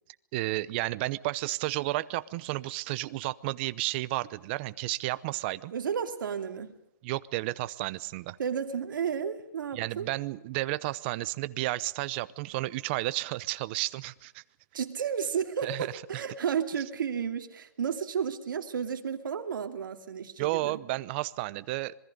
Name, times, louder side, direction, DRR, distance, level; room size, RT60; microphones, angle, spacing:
voice 1, 0.3-5.7 7.0-8.4 9.7-14.4 15.6-16.2 20.4-21.9, right 18 dB, 30° right, 17 dB, 0.7 m, -32 dB
voice 2, 5.7-6.7 8.4-10.1 14.7-20.8, right 7 dB, 70° right, 6 dB, 2.6 m, -32 dB
26.5 x 21.0 x 5.3 m, 0.82 s
hypercardioid pair, 155°, 11 cm